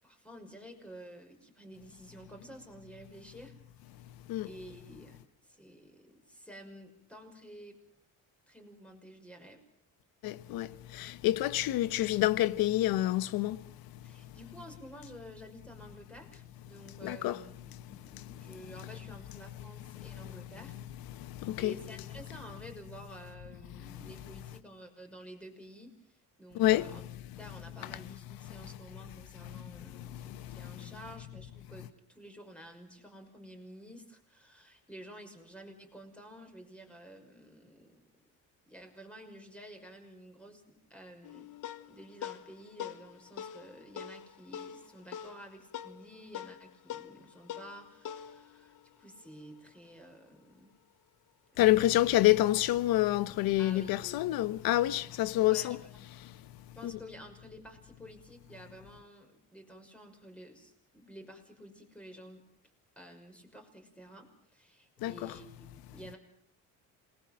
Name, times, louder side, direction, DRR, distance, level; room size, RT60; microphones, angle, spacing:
voice 1, 0.0-3.5 4.0-4.1 4.4-7.8 8.5-9.6 14.0-20.8 21.6-27.0 27.4-38.1 38.6-41.5 41.8-50.7 51.5-51.7 53.6-54.0 55.4-56.1 56.7-62.4 63.0-66.2, equal, 5° left, 6.0 m, -51 dB
voice 2, 10.2-14.3 16.9-17.4 17.7-18.6 19.9-20.4 21.1-21.7 23.8-24.1 26.5-27.1 27.8-28.0 28.4-28.7 29.5-30.9 51.6-55.8 56.2-56.5 56.8-56.9 65.0-65.3, left 15 dB, 85° left, 1.2 m, -29 dB
sound 1, 41.2-50.0, left 10 dB, 60° left, 1.4 m, -45 dB
27.5 x 21.0 x 7.5 m
cardioid pair, 125°, 35 cm